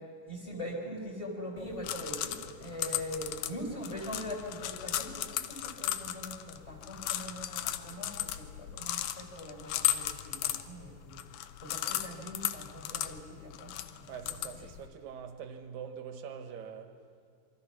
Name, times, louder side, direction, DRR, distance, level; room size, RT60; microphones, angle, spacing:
voice 1, 0.0-14.3, equal, 10° left, 3.8 m, -42 dB
sound 1, 1.6-14.9, left 13 dB, 80° left, 2.2 m, -36 dB
voice 2, 14.1-17.0, right 7 dB, 80° right, 3.1 m, -44 dB
26.5 x 24.5 x 6.0 m
omnidirectional pair, 4.0 m